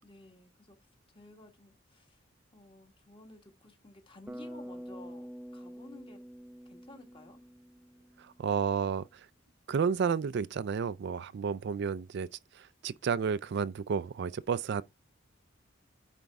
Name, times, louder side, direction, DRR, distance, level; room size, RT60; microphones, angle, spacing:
voice 1, 0.0-0.8 1.1-2.2 2.5-6.2 6.7-7.5, left 2 dB, 25° left, 1.6 m, -54 dB
Bass guitar, 4.3-8.4, equal, 5° right, 0.7 m, -46 dB
voice 2, 8.2-9.3 9.7-12.3 12.5-14.8, right 6 dB, 60° right, 0.4 m, -31 dB
9.2 x 4.5 x 3.6 m
head